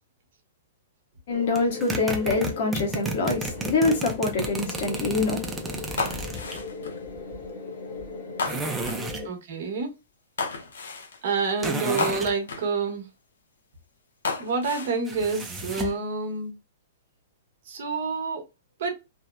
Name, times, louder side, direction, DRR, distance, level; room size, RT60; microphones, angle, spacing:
voice 1, 1.3-9.3, left 3 dB, 50° left, 0.9 m, -27 dB
sound 1, 1.6-6.6 8.5-9.3 11.6-12.4 15.1-16.0, right 2 dB, 5° right, 0.3 m, -32 dB
sound 2, 6.0-7.0 8.4-9.1 10.4-11.2 12.0-12.7 14.2-15.0 15.7-16.1, left 4 dB, 90° left, 0.6 m, -32 dB
voice 2, 9.2-9.9 11.2-13.1 14.4-16.5 17.7-18.4 18.8-19.0, right 4 dB, 50° right, 0.8 m, -28 dB
2.7 x 2.0 x 2.2 m
hypercardioid pair, 175°, 0 cm